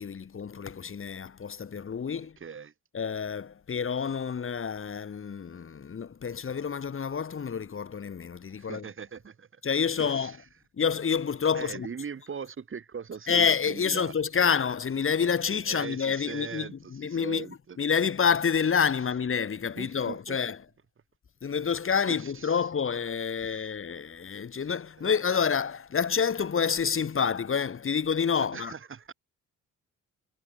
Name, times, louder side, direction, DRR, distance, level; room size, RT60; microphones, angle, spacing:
voice 1, 0.0-2.4 2.9-8.8 9.6-10.3 10.8-11.9 13.3-17.5 17.8-20.6 21.4-28.7, left 6 dB, 45° left, 6.0 m, -28 dB
voice 2, 2.4-2.7 8.6-9.6 10.0-10.4 11.5-14.1 15.7-17.8 19.7-20.4 22.1-22.6 23.3-23.7 25.0-25.1 28.4-29.1, right 6 dB, 45° right, 5.3 m, -40 dB
cardioid pair, 90°, 30 cm